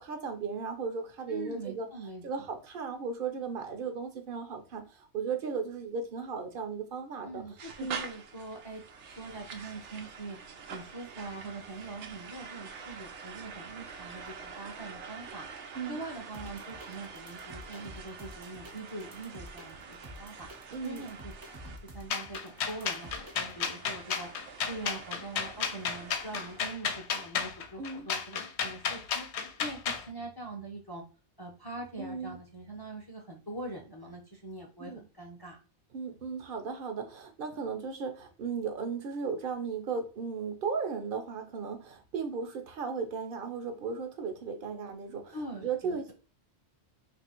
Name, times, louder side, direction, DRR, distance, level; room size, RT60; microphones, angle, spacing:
voice 1, 0.0-1.9 2.2-7.4 7.8-8.0 15.7-16.0 20.7-21.1 27.8-28.1 32.0-32.4 34.8-35.0 35.9-46.1, right 5 dB, 55° right, 0.8 m, -36 dB
voice 2, 1.3-2.5 7.2-10.4 10.7-20.5 20.8-21.6 21.9-29.3 29.6-31.0 31.4-35.6 45.3-46.1, right 2 dB, 25° left, 0.6 m, -43 dB
sound 1, 7.6-26.7, right 5 dB, 85° right, 1.0 m, -46 dB
sound 2, 16.3-23.7, equal, 25° right, 0.6 m, -49 dB
sound 3, 22.1-30.0, left 6 dB, 80° left, 0.9 m, -33 dB
2.8 x 2.6 x 4.3 m
omnidirectional pair, 1.2 m